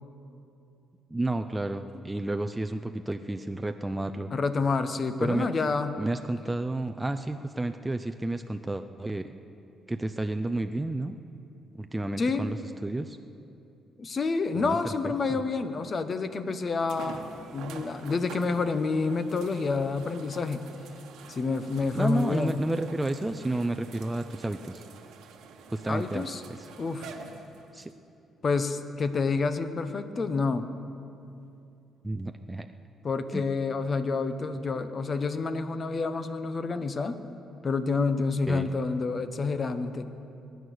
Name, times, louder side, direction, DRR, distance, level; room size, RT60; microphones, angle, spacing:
voice 1, 1.1-4.3 5.2-5.5 6.0-9.3 9.9-11.2 11.8-12.6 12.8-13.2 14.6-15.4 22.0-24.8 25.7-26.3 27.7-27.9 32.0-32.7 33.3-33.4 38.5-38.7, right 2 dB, 15° right, 7 dB, 0.6 m, -31 dB
voice 2, 4.3-6.0 12.2-12.4 14.0-20.7 21.3-22.6 25.9-26.4 26.8-27.1 28.4-30.7 33.0-37.2 37.6-40.1, left 4 dB, 40° left, 10 dB, 1.0 m, -28 dB
sound 1, 15.8-15.9 16.9-27.9 28.7-28.8 32.2-32.3, right 6 dB, 85° right, 1.2 m, -47 dB
22.5 x 9.4 x 6.5 m, 2.7 s
cardioid pair, 90°, 0 cm